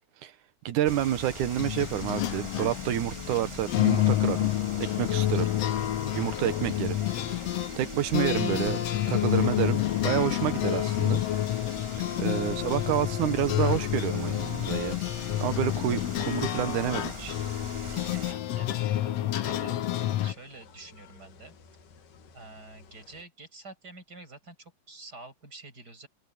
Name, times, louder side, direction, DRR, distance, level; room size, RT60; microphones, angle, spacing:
voice 1, 0.7-4.5 4.8-5.5 6.0-7.0 7.8-8.8 9.1-11.2 12.2-15.0 15.4-17.4, right 12 dB, 75° right, 2.6 m, -29 dB
sound 1, 0.8-18.3, right 1 dB, 10° right, 1.6 m, -43 dB
sound 2, 0.9-20.3, left 13 dB, 65° left, 1.8 m, -29 dB
sound 3, 3.5-23.2, left 8 dB, 90° left, 3.7 m, -51 dB
voice 2, 12.0-12.3 17.8-21.6 22.3-26.1, right 3 dB, 30° right, 6.7 m, -48 dB
omnidirectional pair, 3.6 m